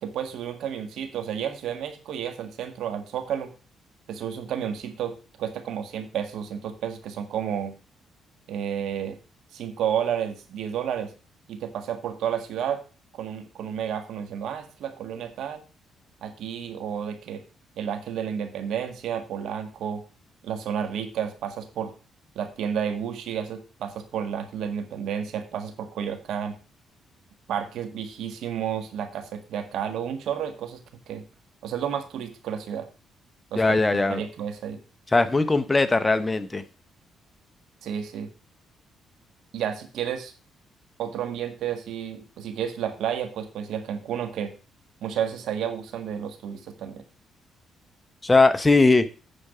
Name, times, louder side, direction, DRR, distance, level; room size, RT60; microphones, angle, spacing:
voice 1, 0.0-3.5 4.1-7.7 8.5-9.2 9.5-11.1 11.5-12.8 13.1-15.6 16.2-17.4 17.8-20.0 20.4-21.9 22.3-26.6 27.5-30.8 31.1-31.2 31.6-32.9 33.5-33.8 34.1-34.8 37.8-38.3 39.5-40.3 41.0-44.5 45.0-47.0, right 8 dB, 75° right, 7 dB, 1.7 m, -31 dB
voice 2, 33.6-34.2 35.1-36.6 48.2-49.1, left 3 dB, 20° left, 11 dB, 0.8 m, -20 dB
8.7 x 4.8 x 6.6 m, 0.34 s
cardioid pair, 90°, 0 cm